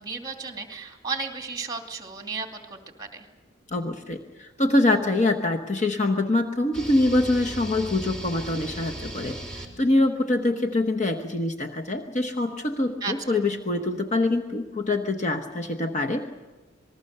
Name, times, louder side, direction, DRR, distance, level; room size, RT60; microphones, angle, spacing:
voice 1, 0.0-3.3 13.0-13.1, right 4 dB, 20° right, 4 dB, 2.6 m, -34 dB
voice 2, 3.7-16.3, left 2 dB, 35° left, 4 dB, 1.1 m, -24 dB
sound 1, 6.7-9.7, right 1 dB, 5° left, 3.4 m, -37 dB
27.0 x 20.0 x 6.7 m, 1.2 s
head